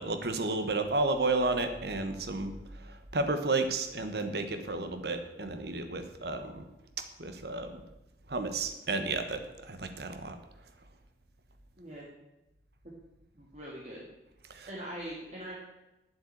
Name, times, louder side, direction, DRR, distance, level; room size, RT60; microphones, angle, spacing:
voice 1, 0.0-2.5 3.1-6.6 7.2-7.8 8.3-10.3 14.5-14.7, right 3 dB, 60° right, 7 dB, 1.2 m, -32 dB
voice 2, 13.4-14.0 14.7-15.5, right 1 dB, 40° right, -4 dB, 2.1 m, -42 dB
9.5 x 7.9 x 8.8 m, 0.99 s
head